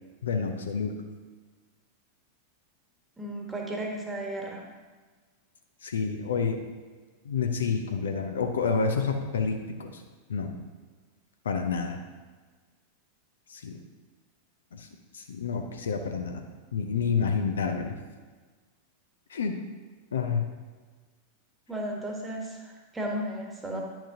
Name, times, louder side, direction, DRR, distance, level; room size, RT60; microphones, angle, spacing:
voice 1, 0.2-1.0 5.8-6.6 7.2-10.0 10.3-10.5 11.4-12.0 13.5-13.8 14.7-14.9 15.1-17.9 19.3-19.6 20.1-20.4, left 5 dB, 65° left, 4 dB, 0.6 m, -29 dB
voice 2, 3.2-4.6 21.7-23.8, right 1 dB, 10° right, 0 dB, 1.3 m, -34 dB
9.8 x 6.0 x 2.8 m, 1.4 s
figure-of-eight pair, 90°, 0 cm